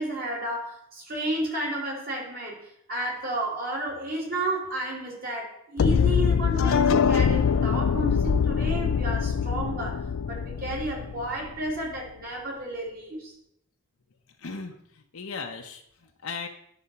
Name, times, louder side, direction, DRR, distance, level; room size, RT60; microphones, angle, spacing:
voice 1, 0.0-13.3, right 1 dB, 45° right, 2.7 m, -32 dB
sound 1, 5.8-11.8, left 6 dB, 70° left, 0.4 m, -24 dB
voice 2, 14.4-16.5, left 4 dB, 85° left, 0.9 m, -37 dB
11.0 x 4.2 x 6.9 m
head